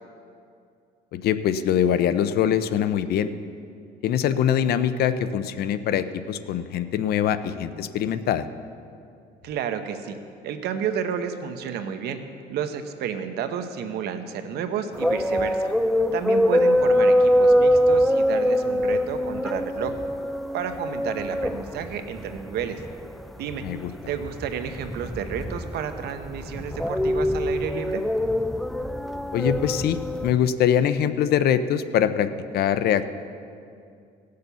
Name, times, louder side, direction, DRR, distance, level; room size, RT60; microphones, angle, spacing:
voice 1, 1.1-3.3 4.0-8.5 23.6-23.9 29.3-33.1, left 9 dB, 70° left, 12 dB, 0.6 m, -23 dB
voice 2, 9.4-10.2 10.4-12.2 12.5-15.7 16.1-19.9 20.5-22.8 23.4-23.6 24.1-28.0, right 8 dB, 75° right, 8 dB, 0.9 m, -31 dB
sound 1, 14.9-30.3, equal, ahead, 0.4 m, -23 dB
17.0 x 6.7 x 6.8 m, 2.4 s
cardioid pair, 110°, 17 cm